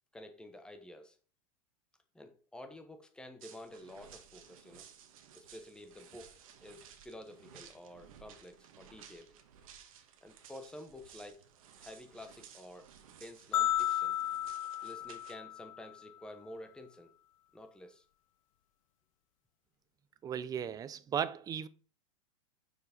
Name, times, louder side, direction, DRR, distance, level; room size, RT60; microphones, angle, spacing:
voice 1, 0.1-1.2 2.1-4.9 5.3-9.3 10.2-11.5 11.8-14.1 14.8-17.1 17.5-18.0, left 1 dB, 5° left, 1.0 m, -50 dB
sound 1, 3.4-15.4, right 8 dB, 75° right, 1.3 m, -57 dB
sound 2, 13.5-15.9, left 12 dB, 70° left, 0.7 m, -33 dB
voice 2, 20.2-21.7, right 8 dB, 20° right, 0.4 m, -36 dB
6.1 x 5.0 x 5.1 m
hypercardioid pair, 125°, 18 cm